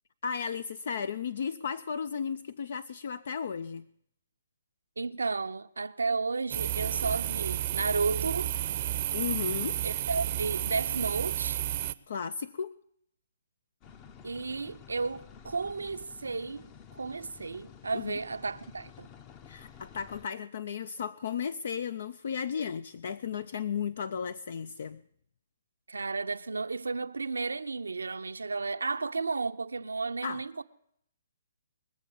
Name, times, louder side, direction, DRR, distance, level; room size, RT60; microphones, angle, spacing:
voice 1, 0.2-3.9 9.1-9.8 12.1-12.7 17.9-18.2 19.5-25.0 30.2-30.4, left 7 dB, 60° left, 0.4 m, -34 dB
voice 2, 5.0-8.5 9.8-11.6 14.2-16.7 16.9-19.1 25.9-30.6, right 4 dB, 90° right, 0.6 m, -33 dB
sound 1, 6.5-11.9, right 13 dB, 40° right, 0.6 m, -31 dB
sound 2, 13.8-20.3, left 7 dB, 30° left, 0.8 m, -51 dB
21.0 x 7.3 x 7.0 m
hypercardioid pair, 140°, 0 cm